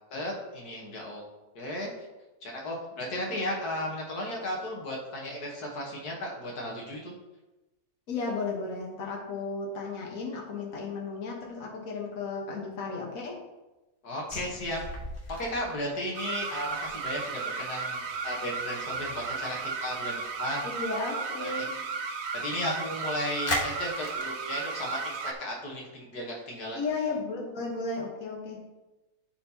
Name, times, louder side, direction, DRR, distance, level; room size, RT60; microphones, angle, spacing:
voice 1, 0.1-1.2 1.6-1.9 2.4-7.1 14.0-14.8 15.4-20.7 21.4-21.7 22.3-26.8, left 1 dB, 80° left, -1 dB, 1.8 m, -35 dB
voice 2, 8.1-13.3 20.6-21.7 26.7-28.6, left 4 dB, 60° left, -1 dB, 1.7 m, -34 dB
sound 1, 14.3-20.9 21.2-21.4 21.6-23.0 23.5-24.3, left 1 dB, 35° left, 1.4 m, -39 dB
sound 2, 16.1-25.3, right 5 dB, 65° right, 1.1 m, -34 dB
13.5 x 4.5 x 2.9 m, 1.1 s
omnidirectional pair, 1.7 m